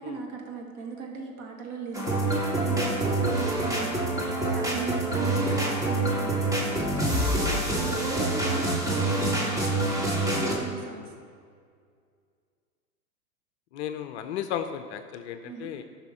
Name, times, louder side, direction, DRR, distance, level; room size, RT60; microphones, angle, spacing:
voice 1, 0.0-11.2 15.4-15.7, right 4 dB, 35° right, 1 dB, 1.8 m, -37 dB
sound 1, 1.9-10.5, right 2 dB, 5° right, 1.7 m, -26 dB
voice 2, 13.7-15.8, left 9 dB, 45° left, 8 dB, 0.6 m, -35 dB
14.0 x 5.7 x 4.2 m, 2.1 s
hypercardioid pair, 110°, 48 cm